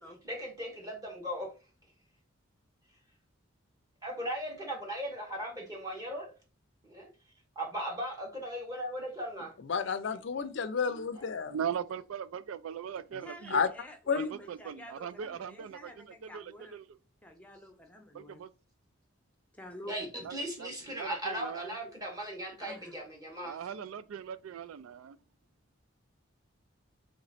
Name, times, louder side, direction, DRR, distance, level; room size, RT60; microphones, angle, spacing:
voice 1, 0.2-1.5 4.0-6.3 6.8-7.1 7.5-9.5 11.2-11.3 19.9-23.6, equal, 20° right, 1.3 m, -38 dB
voice 2, 9.6-11.5 13.5-13.7 14.1-14.3, left 5 dB, 60° left, 0.4 m, -30 dB
voice 3, 11.5-13.6 14.2-17.0 18.1-18.5 20.2-20.7 21.0-21.8 23.4-25.2, right 8 dB, 90° right, 0.3 m, -40 dB
voice 4, 13.2-16.8 17.2-18.4 19.5-20.1 22.6-23.0, equal, 5° left, 0.6 m, -49 dB
3.2 x 3.0 x 4.1 m
head